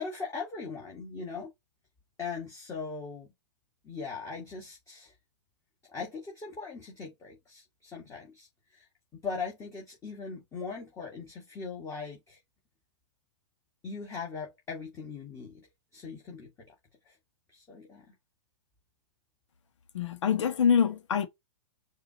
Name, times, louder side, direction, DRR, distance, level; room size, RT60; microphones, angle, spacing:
voice 1, 0.0-1.5 2.2-3.3 3.8-5.1 5.9-8.9 9.1-12.4 13.8-15.7 15.9-16.5 17.0-17.2 17.5-18.1, left 5 dB, 20° left, 1.5 m, -40 dB
voice 2, 19.9-21.3, left 7 dB, 75° left, 1.0 m, -25 dB
4.8 x 2.5 x 2.8 m
hypercardioid pair, 135°, 15 cm